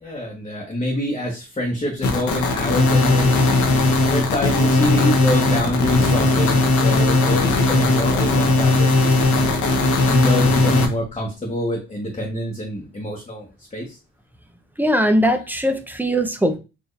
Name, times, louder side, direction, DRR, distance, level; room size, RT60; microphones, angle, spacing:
voice 1, 0.0-3.5 4.0-9.6 10.0-14.0, left 1 dB, 20° left, -2 dB, 1.1 m, -26 dB
sound 1, 2.0-10.9, left 2 dB, 75° left, 1.1 m, -18 dB
voice 2, 14.8-16.6, equal, 5° right, 7 dB, 0.6 m, -20 dB
4.4 x 2.7 x 3.2 m, 0.29 s
cardioid pair, 90°, 30 cm